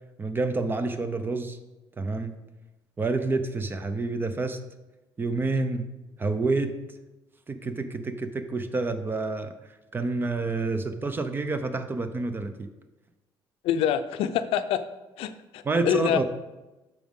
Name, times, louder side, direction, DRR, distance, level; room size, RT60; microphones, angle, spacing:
voice 1, 0.2-1.6 2.0-2.4 3.0-4.6 5.2-5.9 6.2-6.7 7.5-9.5 9.9-12.7 15.7-16.2, right 3 dB, 20° right, 9 dB, 0.6 m, -28 dB
voice 2, 13.6-14.8 15.2-16.2, left 10 dB, 85° left, 10 dB, 0.5 m, -26 dB
9.0 x 6.1 x 3.7 m, 1.1 s
cardioid pair, 125°, 9 cm